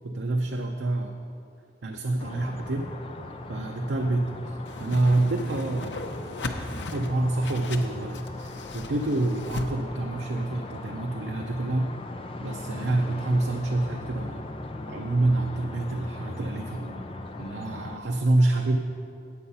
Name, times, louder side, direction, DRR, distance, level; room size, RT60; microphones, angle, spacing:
voice 1, 0.0-1.2 1.8-2.9 3.5-6.1 6.9-11.9 12.4-14.5 14.9-17.0 17.4-18.8, right 2 dB, 85° right, 3 dB, 0.6 m, -27 dB
sound 1, 2.2-18.0, left 2 dB, 30° left, 0.5 m, -39 dB
Whoosh swoosh swish, 4.7-9.7, left 2 dB, 85° left, 0.7 m, -37 dB
8.6 x 8.2 x 5.5 m, 2.4 s
head